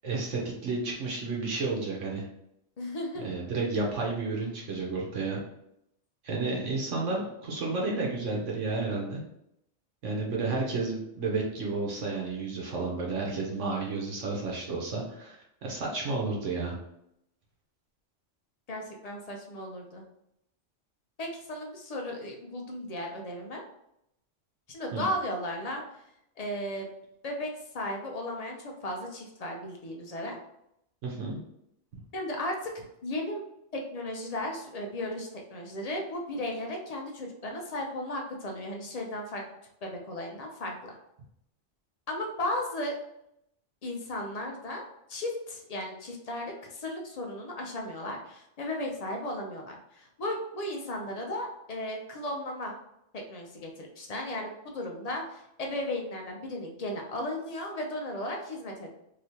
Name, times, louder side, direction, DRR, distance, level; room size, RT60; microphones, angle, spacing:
voice 1, 0.0-2.2 3.2-5.4 6.2-9.2 10.0-15.4 15.6-16.8 24.9-25.0 31.0-31.4, right 3 dB, 90° right, -2 dB, 1.3 m, -31 dB
voice 2, 2.8-3.3 18.7-20.0 21.2-23.6 24.7-25.8 26.4-26.9 27.2-27.5 27.7-30.4 32.1-32.7 33.0-33.4 33.7-39.4 39.8-41.0 42.1-43.0 43.8-44.8 45.1-52.7 53.1-58.9, left 1 dB, 40° left, 1 dB, 0.6 m, -35 dB
3.3 x 2.9 x 2.8 m, 0.78 s
omnidirectional pair, 1.2 m